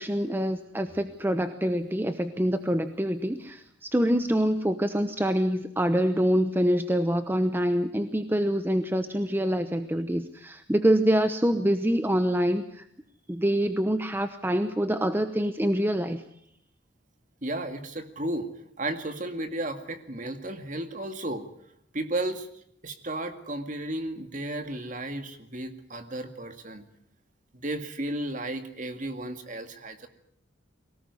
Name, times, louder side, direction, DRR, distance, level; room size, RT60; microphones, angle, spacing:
voice 1, 0.0-12.9 13.3-16.2, equal, 10° right, 9 dB, 0.9 m, -25 dB
voice 2, 17.4-18.5 18.8-21.4 21.9-22.5 22.8-26.8 27.5-30.1, right 1 dB, 40° right, 7 dB, 2.2 m, -33 dB
23.0 x 18.5 x 9.7 m, 0.71 s
head